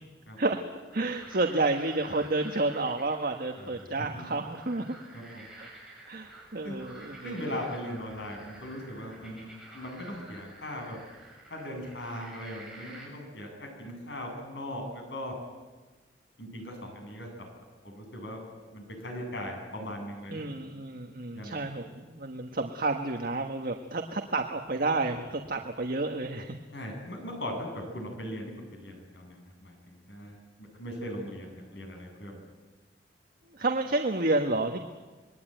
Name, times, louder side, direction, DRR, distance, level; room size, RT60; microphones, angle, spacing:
voice 1, 0.4-4.8 5.6-5.7 6.1-7.4 20.3-26.6 33.5-34.8, right 2 dB, 55° right, 4 dB, 1.5 m, -30 dB
sound 1, 0.9-13.1, right 2 dB, 5° right, 7.5 m, -50 dB
voice 2, 5.1-5.4 6.6-6.8 7.2-9.5 9.7-11.0 11.5-15.3 16.4-17.3 17.8-18.4 18.7-20.5 21.3-21.6 26.7-32.3, equal, 70° left, 2 dB, 8.0 m, -39 dB
26.5 x 22.0 x 9.2 m, 1.3 s
head